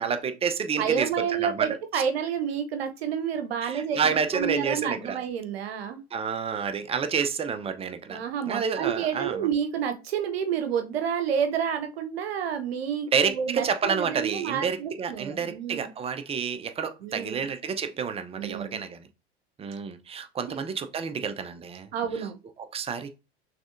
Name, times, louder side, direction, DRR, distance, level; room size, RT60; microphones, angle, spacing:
voice 1, 0.0-1.7 1.9-2.0 3.6-5.2 6.1-8.2 8.5-9.5 13.1-19.1 19.6-21.9 22.2-22.3 22.7-23.1, right 6 dB, 20° right, 0.6 m, -29 dB
voice 2, 0.8-6.0 8.1-15.9 17.0-17.4 18.4-18.8 20.5-20.6 21.9-22.4, right 8 dB, 65° right, 0.8 m, -29 dB
6.1 x 3.3 x 2.5 m
figure-of-eight pair, 85°, 33 cm